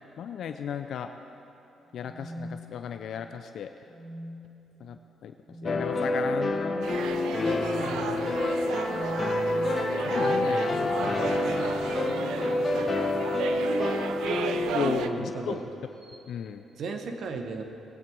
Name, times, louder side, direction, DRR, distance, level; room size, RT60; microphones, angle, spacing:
voice 1, 0.2-1.1 1.9-3.7 4.8-5.3 5.6-7.5 7.8-8.4 10.0-11.7 14.7-15.6 16.3-16.7, left 8 dB, 70° left, 7 dB, 0.5 m, -35 dB
sound 1, 1.9-3.2 3.9-4.6 5.4-5.9 7.3-7.7 8.8-9.9 11.4-13.2 14.3-14.7 16.0-16.2, equal, 30° right, 2.0 m, -43 dB
sound 2, 5.6-15.6, left 2 dB, 35° left, 1.1 m, -28 dB
sound 3, 6.8-15.1, right 8 dB, 85° right, 0.5 m, -35 dB
voice 2, 14.8-15.7 16.8-17.6, right 4 dB, 65° right, 5 dB, 1.2 m, -35 dB
20.0 x 8.6 x 4.6 m, 2.9 s
cardioid pair, 90°, 0 cm